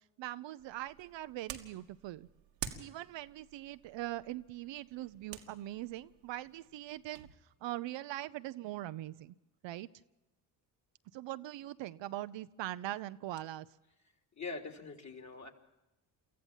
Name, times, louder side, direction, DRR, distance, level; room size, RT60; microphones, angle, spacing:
voice 1, 0.2-2.3 2.8-7.3 7.6-9.3 9.6-9.9 11.1-13.7, right 15 dB, 65° right, 13 dB, 0.7 m, -41 dB
sound 1, 0.6-7.3, right 10 dB, 85° right, 1.7 m, -50 dB
voice 2, 14.4-15.5, left 3 dB, 35° left, 4 dB, 3.3 m, -43 dB
24.5 x 14.5 x 7.3 m, 0.99 s
hypercardioid pair, 55°, 49 cm